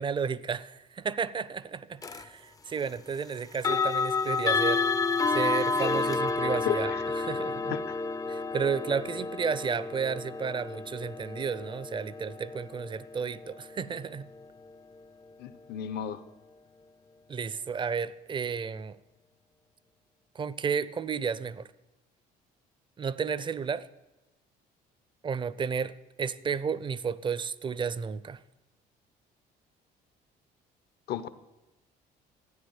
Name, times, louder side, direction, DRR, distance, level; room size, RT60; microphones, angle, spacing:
voice 1, 0.0-4.8 5.3-7.8 8.3-14.3 17.3-19.0 20.3-21.7 23.0-23.9 25.2-28.4, right 6 dB, 30° right, 0.5 m, -32 dB
sound 1, 2.0-2.2 3.5-14.4, left 4 dB, 20° left, 0.5 m, -30 dB
voice 2, 6.6-7.0 7.7-8.0 15.4-16.2 31.1-31.3, left 9 dB, 70° left, 0.9 m, -34 dB
13.0 x 9.4 x 7.3 m
cardioid pair, 110°, 17 cm